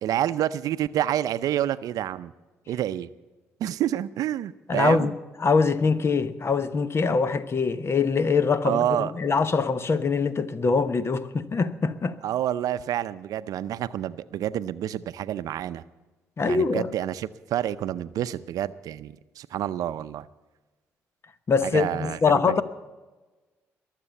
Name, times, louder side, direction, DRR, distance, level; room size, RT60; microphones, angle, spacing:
voice 1, 0.0-2.3 2.7-3.1 3.6-5.1 8.6-9.1 12.2-15.8 16.4-20.3 21.6-22.2 22.5-22.6, right 11 dB, 70° right, 0.6 m, -28 dB
voice 2, 4.7-5.1 5.4-12.2 16.4-16.9 21.5-22.6, left 4 dB, 40° left, 1.1 m, -23 dB
22.0 x 7.5 x 7.0 m
hypercardioid pair, 55°, 6 cm